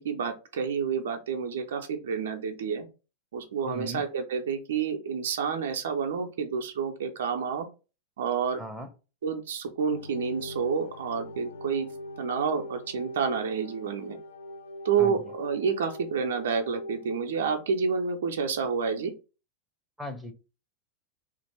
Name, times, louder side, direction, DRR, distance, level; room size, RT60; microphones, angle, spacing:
voice 1, 0.0-2.9 3.3-7.7 8.2-8.6 9.2-11.9 12.2-14.2 14.8-19.1, right 6 dB, 60° right, 5 dB, 0.5 m, -29 dB
voice 2, 3.6-4.0 8.6-8.9 15.0-15.2 20.0-20.3, equal, ahead, 4 dB, 0.7 m, -37 dB
sound 1, 9.9-17.2, left 1 dB, 65° left, 0.5 m, -43 dB
2.8 x 2.5 x 4.1 m, 0.32 s
figure-of-eight pair, 90°, 0 cm